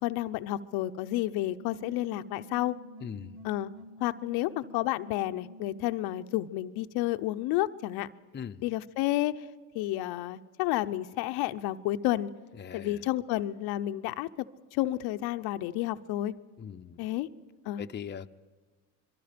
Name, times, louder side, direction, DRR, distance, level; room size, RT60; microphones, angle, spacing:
voice 1, 0.0-2.8 3.4-3.7 4.0-8.1 8.6-9.4 9.7-12.3 12.7-14.5 14.7-16.3 17.0-17.3 17.6-17.8, left 15 dB, 75° left, 9 dB, 0.7 m, -31 dB
sound 1, 1.6-6.6, left 1 dB, 75° right, 1.2 m, -50 dB
voice 2, 3.0-3.4 8.3-8.7 12.6-13.0 16.6-17.0 17.8-18.3, left 7 dB, 30° left, 7 dB, 0.7 m, -40 dB
25.0 x 23.0 x 5.1 m, 1.4 s
supercardioid pair, 85°, 38 cm